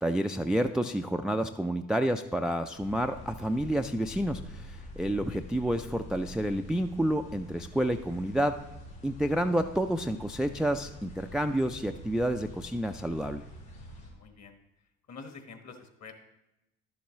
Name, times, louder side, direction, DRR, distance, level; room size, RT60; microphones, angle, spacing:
voice 1, 0.0-8.5 9.0-13.5, right 1 dB, ahead, 7 dB, 0.3 m, -29 dB
sound 1, 2.7-14.1, left 1 dB, 85° left, 2.7 m, -46 dB
voice 2, 14.1-14.5 15.1-16.1, left 4 dB, 45° left, 6 dB, 1.4 m, -47 dB
11.5 x 7.2 x 3.1 m, 0.93 s
hypercardioid pair, 60°, 38 cm